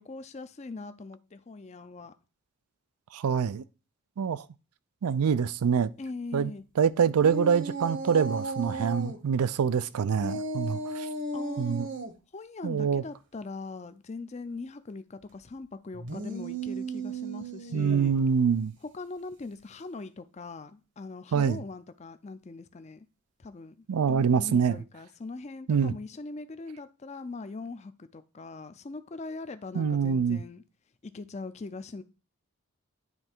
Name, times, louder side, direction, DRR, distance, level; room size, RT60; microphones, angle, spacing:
voice 1, 0.0-2.1 6.0-6.6 11.3-11.7 12.3-18.1 18.9-23.1 23.4-30.6 31.0-32.0, left 3 dB, 30° left, 0.4 m, -41 dB
voice 2, 3.1-3.6 4.2-4.4 5.0-5.9 6.3-6.5 6.8-11.1 11.6-11.9 12.6-13.0 17.7-18.7 21.3-21.6 23.9-24.8 25.7-25.9 29.7-30.4, right 6 dB, 85° right, 0.4 m, -25 dB
sound 1, 7.2-9.2 10.2-12.1 15.9-18.2, right 2 dB, 55° right, 0.9 m, -35 dB
9.7 x 3.3 x 4.5 m
head